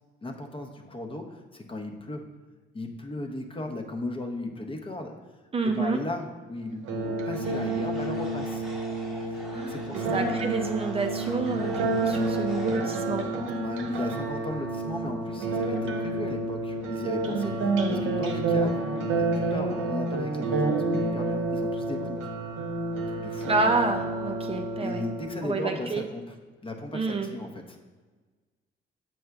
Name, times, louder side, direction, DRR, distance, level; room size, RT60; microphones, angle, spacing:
voice 1, 0.2-2.3 2.7-5.1 5.6-8.6 9.3-10.2 13.6-22.3 23.1-23.5 24.8-26.2 26.6-27.8, left 2 dB, 25° left, 3 dB, 0.7 m, -36 dB
voice 2, 5.5-6.0 9.5-13.3 23.5-25.0 25.4-26.0 26.9-27.3, right 3 dB, 30° right, 4 dB, 0.4 m, -29 dB
sound 1, 6.8-25.8, right 2 dB, 80° right, 0.8 m, -29 dB
sound 2, 7.4-12.8, equal, ahead, 1.1 m, -44 dB
7.6 x 5.4 x 2.3 m, 1.4 s
cardioid pair, 90°, 20 cm